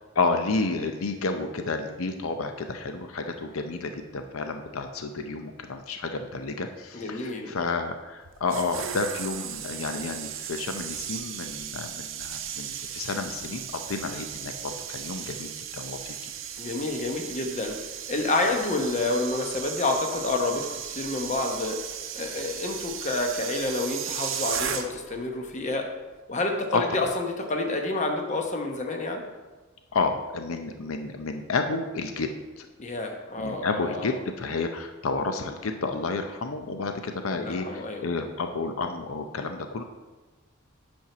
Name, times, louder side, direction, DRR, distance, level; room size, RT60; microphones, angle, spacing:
voice 1, 0.1-16.2 26.7-26.8 29.9-32.3 32.6-32.7 33.4-39.8, left 3 dB, 85° left, 6 dB, 0.6 m, -30 dB
voice 2, 6.9-7.5 16.6-21.8 22.1-25.9 26.3-29.2 32.8-34.1 37.3-38.0, left 2 dB, 35° left, 3 dB, 0.9 m, -29 dB
sound 1, 8.2-25.2 25.5-25.7, right 9 dB, 65° right, 0.6 m, -36 dB
8.4 x 4.5 x 6.0 m, 1.2 s
head